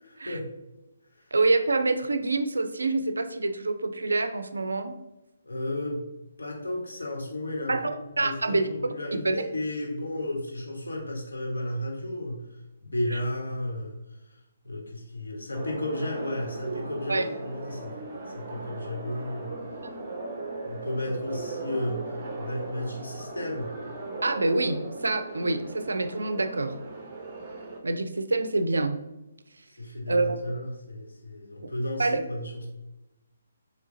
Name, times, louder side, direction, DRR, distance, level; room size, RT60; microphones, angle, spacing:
voice 1, 0.0-0.5 5.4-6.0 6.4-14.0 14.2-17.9 18.3-19.6 20.6-23.7 29.8-32.7, left 1 dB, 75° left, 0 dB, 1.2 m, -33 dB
voice 2, 1.3-5.0 7.7-8.7 9.2-9.4 17.1-17.2 19.8-19.9 24.2-26.7 27.8-29.0 30.1-30.4 32.0-32.2, right 3 dB, 75° right, 9 dB, 0.4 m, -26 dB
sound 1, 15.5-27.8, right 3 dB, 35° right, 0.8 m, -38 dB
3.7 x 3.2 x 3.9 m, 0.94 s
figure-of-eight pair, 140°, 0 cm